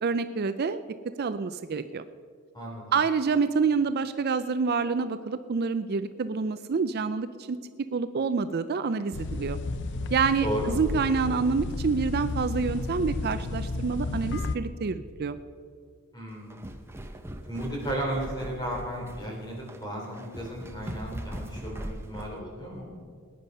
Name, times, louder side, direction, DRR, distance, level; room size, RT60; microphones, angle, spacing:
voice 1, 0.0-0.8 1.2-2.0 2.9-7.6 7.9-9.6 10.1-15.4, right 5 dB, 45° right, 11 dB, 0.4 m, -27 dB
voice 2, 2.5-2.9 10.4-10.7 16.1-16.6 17.5-22.9, equal, 20° left, -2 dB, 3.5 m, -34 dB
sound 1, 9.1-14.6, left 2 dB, 55° left, 0.6 m, -32 dB
sound 2, 16.3-22.4, right 1 dB, 10° right, 0.7 m, -40 dB
20.0 x 9.8 x 5.5 m, 2.1 s
head